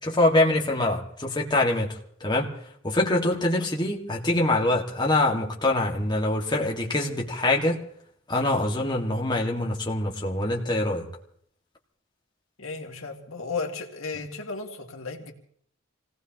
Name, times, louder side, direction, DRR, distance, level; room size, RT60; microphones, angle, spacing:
voice 1, 0.0-2.5 2.8-7.8 8.3-11.1, left 2 dB, 20° left, 1.8 m, -24 dB
voice 2, 12.6-15.3, left 4 dB, 85° left, 2.0 m, -34 dB
27.0 x 18.0 x 2.9 m
head